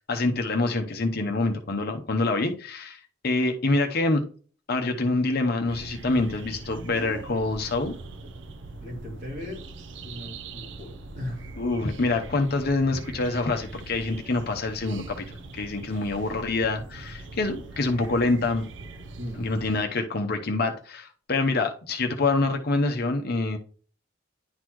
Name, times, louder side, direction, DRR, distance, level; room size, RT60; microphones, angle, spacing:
voice 1, 0.0-4.2 4.7-7.9 11.6-18.6 19.4-23.6, left 2 dB, 55° left, 0.9 m, -26 dB
sound 1, 5.7-19.8, right 3 dB, 65° right, 0.7 m, -42 dB
voice 2, 8.8-9.7 10.0-11.5 19.2-19.5, left 1 dB, 40° right, 3.0 m, -37 dB
10.5 x 4.0 x 3.1 m
head